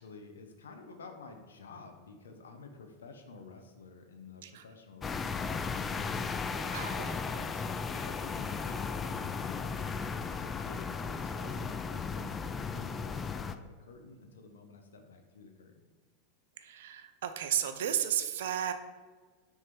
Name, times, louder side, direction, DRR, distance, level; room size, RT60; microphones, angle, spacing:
voice 1, 0.0-6.0 6.4-7.7 7.9-15.9, left 4 dB, 85° left, 5 dB, 0.8 m, -51 dB
sound 1, 5.0-13.6, left 5 dB, 25° left, 0.3 m, -35 dB
voice 2, 6.7-7.4 16.6-18.7, right 10 dB, 75° right, 9 dB, 0.5 m, -34 dB
6.3 x 3.5 x 4.5 m, 1.4 s
hypercardioid pair, 100°, 0 cm